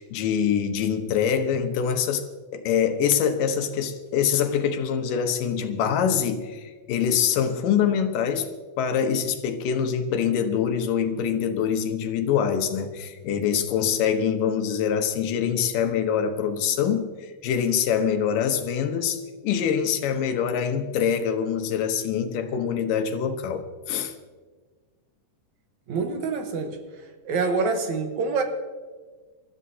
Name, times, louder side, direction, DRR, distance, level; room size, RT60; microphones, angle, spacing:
voice 1, 0.0-2.2 2.5-8.5 8.8-24.1, left 8 dB, 80° left, 7 dB, 2.7 m, -24 dB
voice 2, 25.9-26.8 27.2-28.4, right 4 dB, 65° right, 5 dB, 2.3 m, -26 dB
28.0 x 13.5 x 2.8 m, 1.4 s
omnidirectional pair, 3.8 m